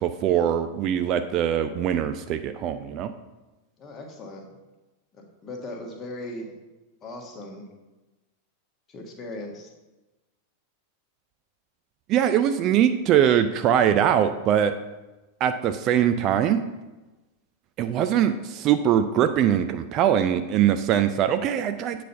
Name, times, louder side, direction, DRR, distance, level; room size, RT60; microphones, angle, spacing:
voice 1, 0.0-3.1 12.1-14.7 15.4-16.6 17.8-22.0, right 9 dB, 35° right, 9 dB, 0.4 m, -22 dB
voice 2, 3.8-4.4 5.4-6.5 7.0-7.6 8.9-9.7, left 1 dB, 25° left, 1 dB, 1.5 m, -38 dB
8.2 x 4.2 x 5.5 m, 1.1 s
figure-of-eight pair, 90°, 0 cm